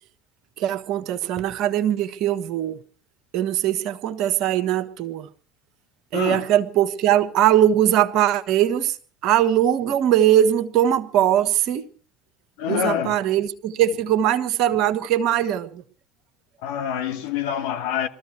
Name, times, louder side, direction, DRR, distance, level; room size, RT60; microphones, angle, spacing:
voice 1, 0.6-2.8 3.3-5.3 6.1-9.0 9.2-11.9 12.7-15.8, right 11 dB, 50° right, 1.3 m, -21 dB
voice 2, 6.1-6.4 12.6-13.2 16.6-18.1, left 9 dB, 65° left, 1.5 m, -26 dB
22.0 x 14.0 x 4.6 m
figure-of-eight pair, 65°, 0 cm